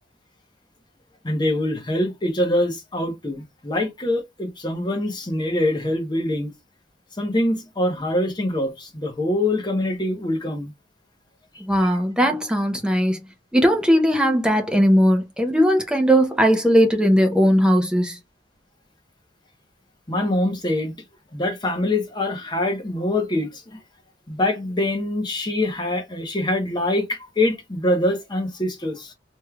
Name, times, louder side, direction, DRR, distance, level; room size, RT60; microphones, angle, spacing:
voice 1, 1.2-6.5 7.2-10.7 20.1-20.9 21.3-23.8 24.3-29.1, left 1 dB, 25° left, 0.9 m, -24 dB
voice 2, 11.6-13.2 13.5-18.2, equal, 5° right, 0.7 m, -18 dB
3.5 x 3.1 x 2.3 m
head